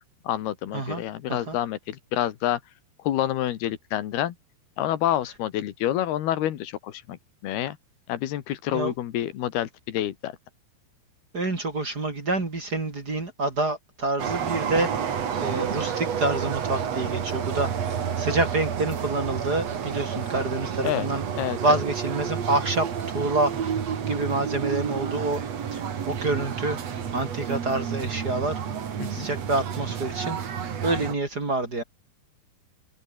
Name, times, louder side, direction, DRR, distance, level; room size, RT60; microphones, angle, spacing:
voice 1, 0.3-2.6 3.1-4.4 4.8-7.2 7.4-7.8 8.1-10.3 20.8-21.1 21.4-21.8 29.0-29.3, left 12 dB, 85° left, 3.6 m, -28 dB
voice 2, 11.3-14.9 15.4-17.7 18.2-21.2 21.6-23.5 24.0-25.4 25.7-26.8 27.1-28.5 29.1-30.4 30.8-31.8, right 2 dB, 25° right, 3.5 m, -27 dB
sound 1, 14.2-31.1, right 7 dB, 50° right, 3.1 m, -30 dB
omnidirectional pair, 4.4 m